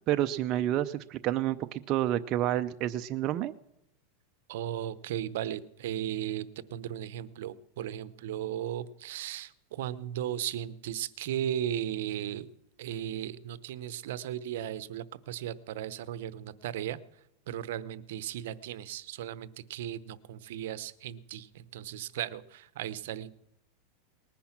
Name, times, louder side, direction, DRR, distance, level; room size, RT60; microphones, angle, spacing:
voice 1, 0.1-3.5, right 12 dB, 40° right, 9 dB, 0.5 m, -29 dB
voice 2, 4.5-12.5 12.8-17.0 17.5-23.3, right 11 dB, 75° right, 16 dB, 0.8 m, -36 dB
20.0 x 10.0 x 5.9 m, 0.83 s
supercardioid pair, 140°, 0 cm